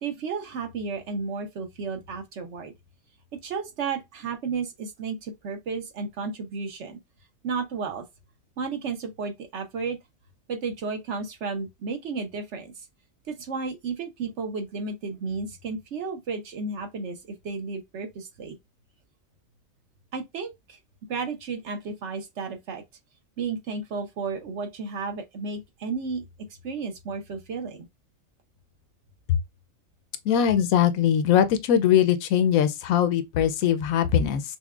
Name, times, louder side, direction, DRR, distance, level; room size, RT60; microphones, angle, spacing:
voice 1, 0.0-2.7 3.3-7.0 7.4-8.1 8.6-10.0 10.5-12.8 13.3-17.2 17.4-18.6 20.1-20.8 21.1-22.8 23.4-27.9, right 4 dB, 60° right, 1.0 m, -33 dB
voice 2, 30.3-34.4, left 9 dB, 90° left, 1.0 m, -21 dB
5.8 x 2.1 x 2.3 m
omnidirectional pair, 1.4 m